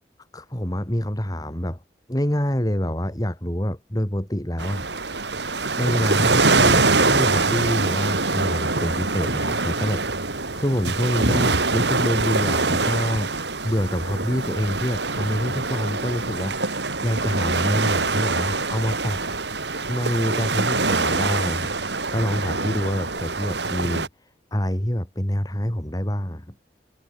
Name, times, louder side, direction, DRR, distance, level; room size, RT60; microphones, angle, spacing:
voice 1, 0.3-1.8 2.1-4.8 5.8-10.0 10.5-13.3 13.6-16.7 17.0-19.2 19.9-24.1 24.5-26.5, equal, 20° left, 2.6 m, -26 dB
sound 1, 4.6-24.1, right 3 dB, 80° right, 4.6 m, -24 dB
head